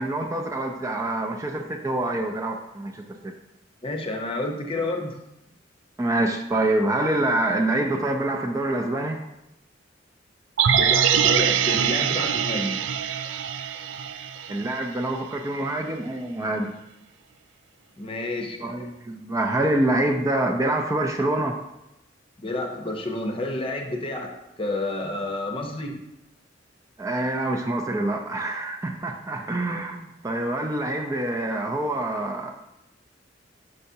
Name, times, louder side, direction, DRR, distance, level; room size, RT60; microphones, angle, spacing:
voice 1, 0.0-3.3 6.0-9.2 14.5-16.7 18.6-21.6 27.0-32.5, right 1 dB, 15° right, 2 dB, 0.4 m, -26 dB
voice 2, 3.8-5.2 10.7-12.7 18.0-18.9 22.4-26.0, left 2 dB, 30° left, 3 dB, 0.7 m, -30 dB
sound 1, 10.6-14.8 15.1-15.2, right 8 dB, 85° right, 0.4 m, -23 dB
6.5 x 5.7 x 2.7 m, 0.88 s
head